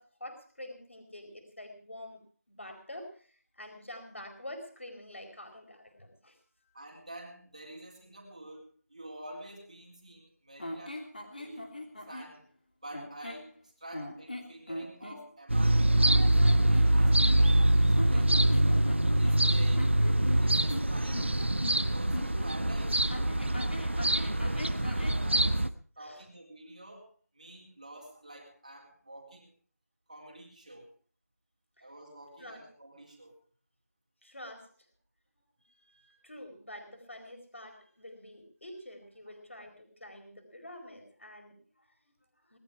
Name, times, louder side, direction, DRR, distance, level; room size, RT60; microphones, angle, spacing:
voice 1, 0.0-2.2 2.5-6.7 23.4-23.5 26.0-26.3 31.8-31.9 32.4-32.6 34.2-34.7 35.7-42.6, left 1 dB, 45° left, 5 dB, 4.5 m, -47 dB
voice 2, 6.7-11.8 12.1-12.5 12.8-16.4 16.7-18.7 19.1-20.0 20.4-21.5 21.9-23.0 23.4-25.7 26.0-29.5 30.1-30.9 31.8-33.4, right 1 dB, 25° right, -1 dB, 4.0 m, -48 dB
sound 1, 10.6-12.3 12.9-13.5 13.9-15.2 16.4-17.6 17.9-22.5 23.1-25.2, left 1 dB, 30° left, 2.9 m, -41 dB
sound 2, 15.5-25.7, right 1 dB, 45° right, 1.0 m, -25 dB
20.5 x 12.5 x 4.8 m, 0.44 s
figure-of-eight pair, 180°, 9 cm